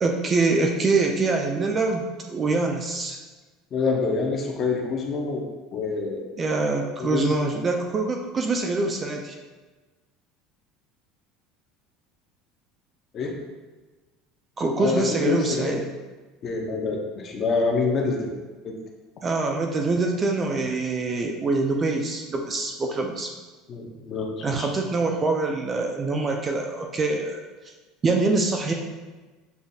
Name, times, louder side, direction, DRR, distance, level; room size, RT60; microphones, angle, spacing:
voice 1, 0.0-3.2 6.4-9.4 14.6-15.8 19.2-23.3 24.4-27.4 28.0-28.7, right 3 dB, 20° right, 2 dB, 0.3 m, -24 dB
voice 2, 3.7-5.4 5.7-6.2 7.0-7.4 13.1-13.3 14.8-15.8 16.4-18.7 23.7-24.7, left 4 dB, 30° left, 1 dB, 0.6 m, -26 dB
6.9 x 2.4 x 2.6 m, 1.3 s
cardioid pair, 165°, 0 cm